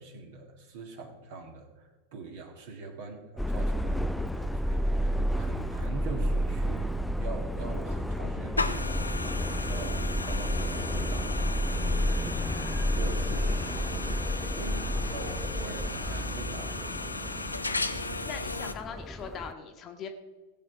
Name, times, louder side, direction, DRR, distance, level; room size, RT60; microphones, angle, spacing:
voice 1, 0.0-9.4 9.7-17.1, right 3 dB, 50° right, 2 dB, 1.9 m, -43 dB
Subway metro underground, 3.4-19.5, equal, ahead, 0.3 m, -31 dB
sound 1, 8.6-18.7, left 3 dB, 80° left, 0.7 m, -35 dB
voice 2, 18.2-20.1, left 6 dB, 30° left, 5 dB, 1.3 m, -40 dB
17.0 x 7.6 x 4.9 m, 1.3 s
figure-of-eight pair, 90°, 0 cm